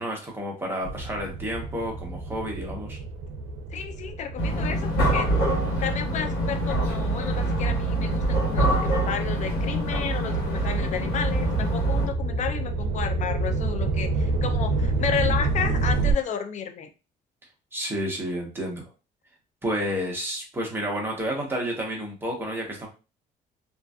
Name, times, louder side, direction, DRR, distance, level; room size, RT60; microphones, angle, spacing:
voice 1, 0.0-3.0 17.7-18.8 19.6-22.9, equal, 15° right, -1 dB, 0.9 m, -30 dB
sound 1, 0.8-7.6 8.2-16.1, right 3 dB, 75° right, 0.5 m, -29 dB
voice 2, 3.7-5.3 5.8-16.9, left 7 dB, 45° left, 7 dB, 0.5 m, -32 dB
sound 2, 4.4-12.1, right 1 dB, 75° left, 1.2 m, -25 dB
2.5 x 2.3 x 2.3 m, 0.31 s
cardioid pair, 110°, 17 cm